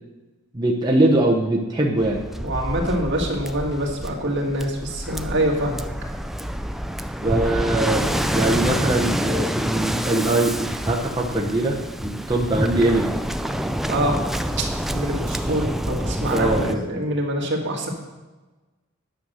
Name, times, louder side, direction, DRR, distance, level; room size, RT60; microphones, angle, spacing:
voice 1, 0.5-2.2 7.2-13.1 16.3-16.9, right 2 dB, 20° right, -3 dB, 0.9 m, -22 dB
Waves surf, 2.0-16.8, equal, ahead, 0.4 m, -27 dB
voice 2, 2.4-5.8 13.9-14.2 14.6-17.9, right 1 dB, 60° right, 0 dB, 1.9 m, -25 dB
10.0 x 6.6 x 6.3 m, 1.2 s
head